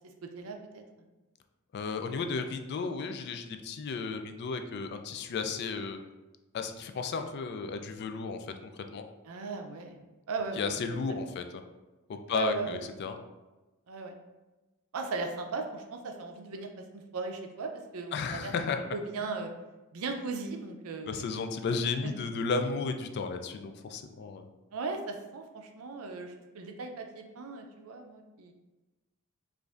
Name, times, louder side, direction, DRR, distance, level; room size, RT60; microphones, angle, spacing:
voice 1, 0.3-0.8 9.3-10.0 10.3-10.8 11.2-11.4 12.3-12.8 13.9-14.2 14.9-18.5 18.9-19.5 19.9-21.3 22.0-22.1 24.7-28.5, right 4 dB, 75° right, 4 dB, 0.5 m, -37 dB
voice 2, 1.7-6.0 6.5-8.5 8.9-9.0 10.6-11.4 12.1-13.2 18.1-18.8 21.1-24.4, left 4 dB, 50° left, 6 dB, 0.3 m, -33 dB
5.0 x 2.5 x 2.4 m, 1.1 s
head